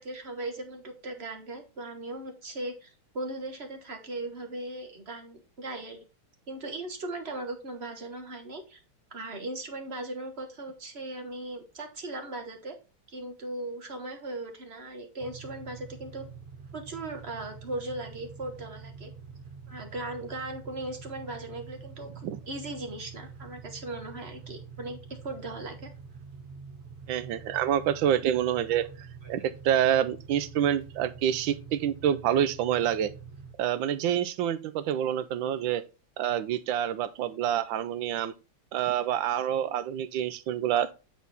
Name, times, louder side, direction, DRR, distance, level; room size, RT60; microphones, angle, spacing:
voice 1, 0.0-6.0 6.5-8.8 9.1-12.7 13.1-16.2 16.7-19.1 19.7-25.0 25.2-25.9, right 2 dB, 35° right, 1.2 m, -38 dB
sound 1, 15.2-33.5, right 5 dB, 60° right, 0.5 m, -46 dB
voice 2, 27.1-28.9 29.3-33.1 33.6-35.8 36.2-38.3 38.7-40.9, right 10 dB, 75° right, 1.3 m, -27 dB
9.4 x 4.2 x 4.0 m
omnidirectional pair, 2.3 m